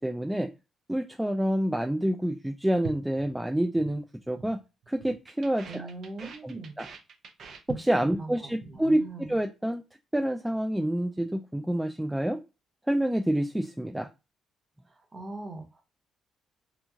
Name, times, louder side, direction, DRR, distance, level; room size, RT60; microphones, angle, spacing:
voice 1, 0.0-0.5 0.9-4.6 4.9-5.9 6.4-6.9 7.7-9.8 10.1-12.4 12.9-14.1, right 1 dB, 5° right, 5 dB, 0.3 m, -28 dB
sound 1, 2.8-4.0 4.2-4.6 4.8-8.2 8.5-8.8 9.1-9.4, right 5 dB, 60° right, 0.6 m, -43 dB
voice 2, 5.6-6.8 8.0-9.3 14.9-15.8, right 3 dB, 25° right, 4 dB, 0.9 m, -41 dB
3.0 x 2.5 x 2.3 m, 0.27 s
cardioid pair, 90°, 0 cm